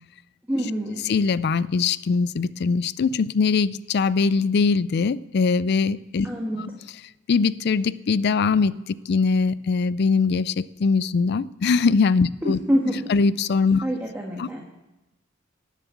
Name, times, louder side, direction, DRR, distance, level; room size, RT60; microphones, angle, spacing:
voice 1, 0.5-1.1 6.2-6.6 12.4-13.0 13.8-14.6, equal, 10° right, -1 dB, 1.4 m, -26 dB
voice 2, 1.1-6.3 7.3-12.6 13.1-13.9 14.4-14.5, left 4 dB, 55° left, 19 dB, 0.4 m, -22 dB
18.5 x 7.5 x 7.0 m, 0.99 s
head